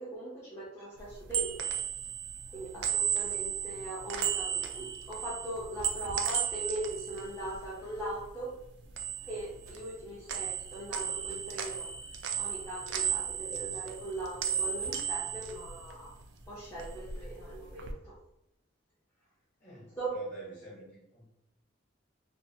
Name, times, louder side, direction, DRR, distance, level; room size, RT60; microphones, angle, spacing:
voice 1, 0.0-1.5 2.5-8.5 9.2-11.9 12.4-16.1 16.5-18.1 20.0-20.1, right 1 dB, 15° left, -10 dB, 0.7 m, -40 dB
sound 1, 1.0-8.3 8.6-10.0 10.3-16.3 16.6-17.9, right 8 dB, 60° right, 0.3 m, -35 dB
sound 2, 9.6-9.9 11.3-11.5 12.9-13.3 14.7-15.1, right 1 dB, 90° right, 0.7 m, -54 dB
voice 2, 19.6-21.3, right 1 dB, 40° left, -6 dB, 1.2 m, -46 dB
2.6 x 2.4 x 2.7 m, 0.83 s
head